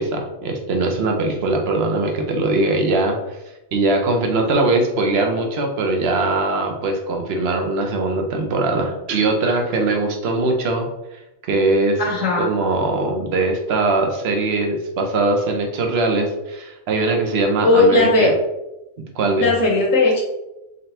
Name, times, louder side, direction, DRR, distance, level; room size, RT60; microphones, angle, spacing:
voice 1, 0.0-3.2 3.7-10.9 11.5-12.0 12.4-18.3 19.2-19.5, right 2 dB, 60° right, 2 dB, 0.9 m, -21 dB
voice 2, 12.0-12.5 17.6-18.3 19.4-20.2, left 2 dB, 80° left, -3 dB, 1.4 m, -16 dB
4.0 x 3.2 x 2.8 m, 0.95 s
omnidirectional pair, 1.3 m